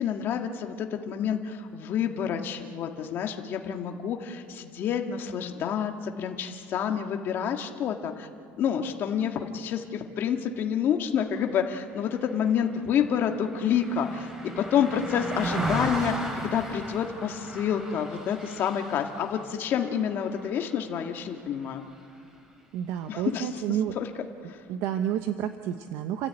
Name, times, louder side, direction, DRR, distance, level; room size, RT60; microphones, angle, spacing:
voice 1, 0.0-8.3 8.6-14.3 14.6-21.8 23.1-23.5 23.9-24.1 24.5-24.6, left 8 dB, 50° left, 4 dB, 1.9 m, -28 dB
Car passing by, 12.0-21.6 22.0-22.2, right 1 dB, 15° right, 3.7 m, -37 dB
voice 2, 15.5-15.9 22.7-23.9 24.7-26.3, right 10 dB, 70° right, 8 dB, 0.9 m, -30 dB
29.5 x 13.5 x 8.9 m, 2.4 s
cardioid pair, 145°, 5 cm